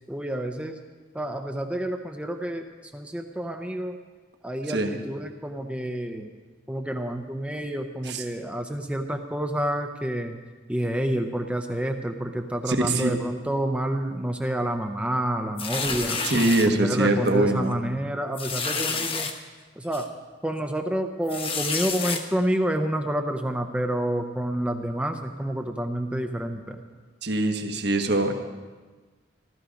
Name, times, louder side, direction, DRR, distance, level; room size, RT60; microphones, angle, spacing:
voice 1, 0.1-0.8 1.1-2.7 2.9-4.0 4.4-6.3 6.7-10.4 10.7-16.2 16.8-19.3 19.8-20.1 20.4-26.8, right 1 dB, 5° right, 5 dB, 0.7 m, -28 dB
voice 2, 12.7-13.2 16.2-17.7 27.2-28.3, right 2 dB, 60° right, 5 dB, 1.3 m, -23 dB
sound 1, 15.6-16.7 17.3-17.4 17.7-17.8 18.4-19.3 19.9-20.0 21.3-22.2, left 5 dB, 30° left, 0.9 m, -29 dB
15.5 x 13.0 x 5.1 m, 1.4 s
head